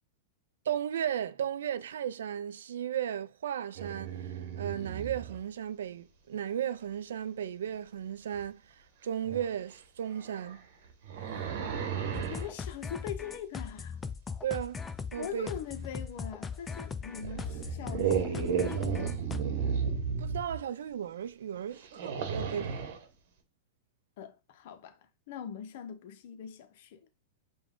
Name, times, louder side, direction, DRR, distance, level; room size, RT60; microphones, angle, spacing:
voice 1, 0.7-8.6 9.0-10.7 14.4-14.9 15.1-15.5 20.2-22.8, right 9 dB, 80° right, 0.3 m, -35 dB
sound 1, 3.8-5.4 8.3-8.4 9.2-9.5 10.1-12.5 16.3-16.4 17.1-20.6 21.8-23.0, right 7 dB, 65° right, 1.0 m, -34 dB
sound 2, 12.1-19.4, left 5 dB, 15° left, 0.4 m, -39 dB
voice 2, 12.3-14.0 15.2-19.2 24.2-27.0, left 8 dB, 60° left, 0.6 m, -42 dB
5.0 x 2.2 x 3.6 m
hypercardioid pair, 120°, 0 cm